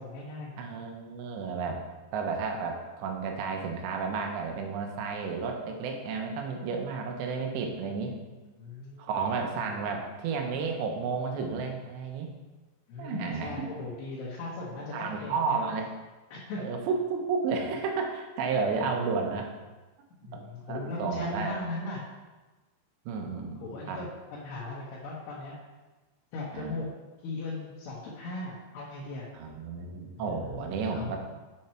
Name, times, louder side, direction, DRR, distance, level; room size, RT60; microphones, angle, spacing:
voice 1, 0.0-0.5 8.4-9.1 9.6-10.0 12.9-15.6 16.3-16.6 20.2-22.0 23.6-25.5 26.3-26.9 27.2-29.3 30.2-30.6 30.9-31.2, left 2 dB, 70° left, -6 dB, 3.1 m, -38 dB
voice 2, 0.6-1.8 2.1-8.1 9.0-12.3 13.0-13.7 14.9-15.9 16.6-19.5 20.3-20.4 20.7-21.6 23.1-24.0 26.5-26.8 29.3-31.2, right 5 dB, 80° right, 3 dB, 3.1 m, -32 dB
7.9 x 7.1 x 4.4 m, 1.2 s
omnidirectional pair, 5.2 m